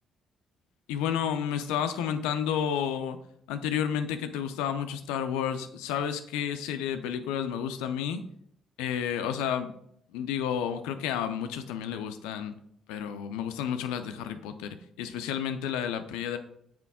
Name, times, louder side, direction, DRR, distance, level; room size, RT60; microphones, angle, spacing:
voice 1, 0.9-3.2 3.5-8.2 8.8-9.7 10.1-12.5 12.9-16.4, left 8 dB, 85° left, 9 dB, 0.4 m, -31 dB
6.0 x 4.4 x 3.5 m, 0.70 s
hypercardioid pair, 55°, 0 cm